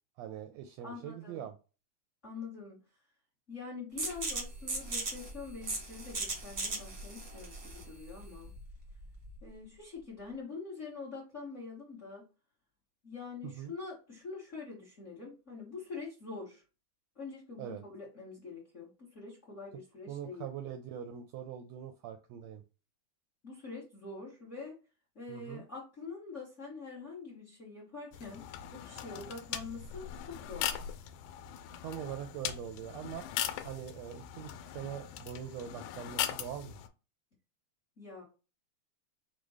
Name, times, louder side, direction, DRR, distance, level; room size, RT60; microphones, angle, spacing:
voice 1, 0.2-1.5 13.4-13.7 17.6-17.8 20.1-22.6 25.3-25.6 31.8-33.3 33.6-36.8, right 9 dB, 80° right, 1.5 m, -42 dB
voice 2, 0.8-1.4 2.2-2.8 3.5-8.5 9.4-12.3 13.0-16.6 17.1-20.4 23.4-24.8 25.1-30.7 38.0-38.2, left 4 dB, 45° left, 0.9 m, -45 dB
sound 1, 4.0-9.5, right 2 dB, 55° right, 0.9 m, -38 dB
sound 2, 28.1-36.9, left 11 dB, 90° left, 2.1 m, -40 dB
5.0 x 2.2 x 4.8 m
omnidirectional pair, 3.4 m